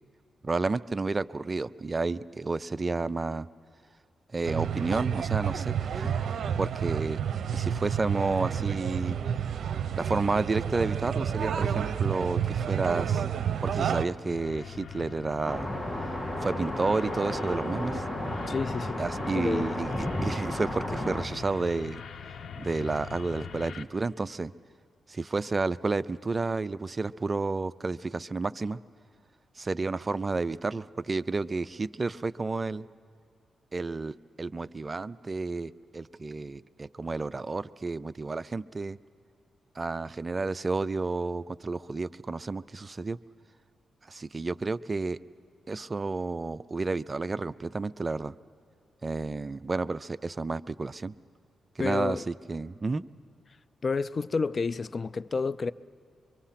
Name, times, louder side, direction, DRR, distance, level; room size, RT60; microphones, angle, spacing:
voice 1, 0.4-3.5 4.3-6.1 6.6-7.2 7.5-9.2 10.0-13.2 13.6-15.7 16.4-18.0 19.0-19.9 20.2-22.0 22.6-24.5 25.1-28.8 29.6-32.9 33.7-39.0 39.8-43.2 44.1-45.2 45.7-48.3 49.0-51.1 51.8-53.0, right 3 dB, 35° right, 0.4 m, -31 dB
sound 1, 4.4-14.0, right 8 dB, 75° right, 0.7 m, -30 dB
sound 2, 14.2-23.8, left 6 dB, 70° left, 0.9 m, -42 dB
sound 3, 15.4-21.3, left 1 dB, 10° left, 1.8 m, -33 dB
voice 2, 18.5-19.0 19.3-19.8 51.8-52.3 53.8-55.7, left 4 dB, 45° left, 0.4 m, -30 dB
24.5 x 24.0 x 5.8 m
cardioid pair, 70°, 0 cm